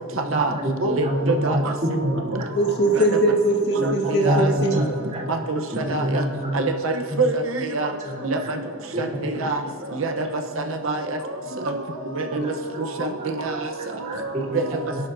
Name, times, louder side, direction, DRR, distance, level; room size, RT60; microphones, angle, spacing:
voice 1, 0.2-1.6 2.0-2.5 3.8-4.4 4.7-5.2 5.7-6.6 7.1-7.2 8.0-8.2 8.9-9.5 11.5-11.8 12.3-12.5 14.1-14.6, equal, 35° right, -2 dB, 3.2 m, -27 dB
voice 2, 0.8-1.6 3.8-4.8 5.5-6.2 6.5-7.9 8.2-8.4 9.0-9.6 10.0-10.3 10.8-11.0 11.7-11.8 12.1-12.5 13.0-13.1 13.4-13.6 14.5-14.6, right 3 dB, 70° right, 4 dB, 0.9 m, -25 dB
voice 3, 2.5-4.8, right 1 dB, 55° left, 1 dB, 1.8 m, -21 dB
25.5 x 11.5 x 2.7 m, 2.1 s
head